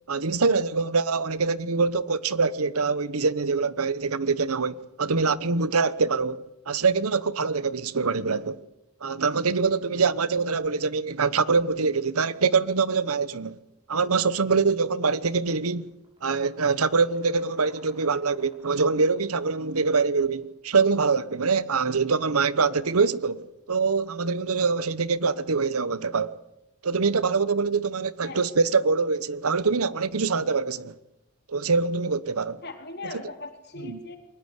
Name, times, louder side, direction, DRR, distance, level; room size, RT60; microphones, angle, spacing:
voice 1, 0.1-8.6 9.0-13.6 13.9-15.9 16.2-26.4 26.8-30.9 31.5-32.6 33.8-34.0, right 4 dB, 90° right, 1.0 m, -24 dB
sound 1, 15.6-20.6, right 1 dB, 25° right, 7.3 m, -56 dB
voice 2, 32.6-34.2, left 3 dB, 50° left, 4.1 m, -39 dB
22.5 x 20.0 x 8.3 m
head